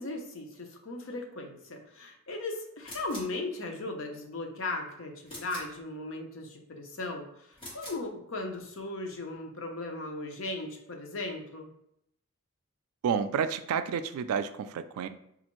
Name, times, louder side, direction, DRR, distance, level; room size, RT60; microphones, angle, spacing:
voice 1, 0.0-11.7, left 2 dB, 60° left, 3 dB, 0.6 m, -37 dB
sound 1, 2.8-3.4 5.3-5.8 7.5-8.1, left 1 dB, 20° left, 1.2 m, -44 dB
voice 2, 13.0-15.1, right 7 dB, 80° right, 12 dB, 0.3 m, -30 dB
4.1 x 2.4 x 3.0 m, 0.76 s
head